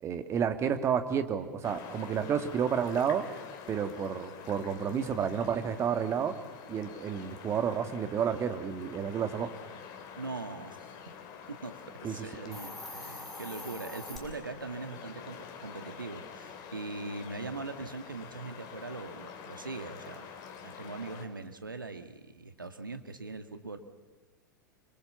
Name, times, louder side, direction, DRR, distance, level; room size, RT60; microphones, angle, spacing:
voice 1, 0.0-3.2 3.7-6.3 6.7-9.5 12.0-12.6, right 7 dB, 25° right, 9 dB, 2.1 m, -31 dB
sound 1, 1.6-21.3, left 7 dB, 40° left, 3.3 m, -47 dB
voice 2, 10.2-10.9 11.5-20.3 20.6-23.9, right 3 dB, 80° right, 9 dB, 2.0 m, -41 dB
Hiss, 12.5-14.2, left 1 dB, 5° left, 6.1 m, -43 dB
27.5 x 24.0 x 7.1 m, 1.2 s
figure-of-eight pair, 95°, 11 cm